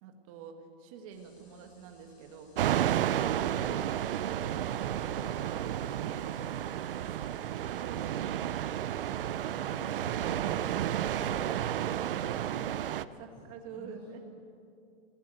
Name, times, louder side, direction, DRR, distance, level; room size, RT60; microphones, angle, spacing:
voice 1, 0.0-2.5 4.2-6.4 7.0-7.3 7.5-8.8 10.3-11.6 13.2-14.2, right 6 dB, 30° right, 4 dB, 1.9 m, -47 dB
sound 1, 1.1-12.5, left 3 dB, 75° left, 6.8 m, -64 dB
sound 2, 2.6-13.1, right 11 dB, 60° right, 0.7 m, -32 dB
voice 2, 13.3-14.2, equal, 25° left, -6 dB, 5.8 m, -50 dB
20.0 x 17.5 x 7.8 m, 2.6 s
hypercardioid pair, 170°, 32 cm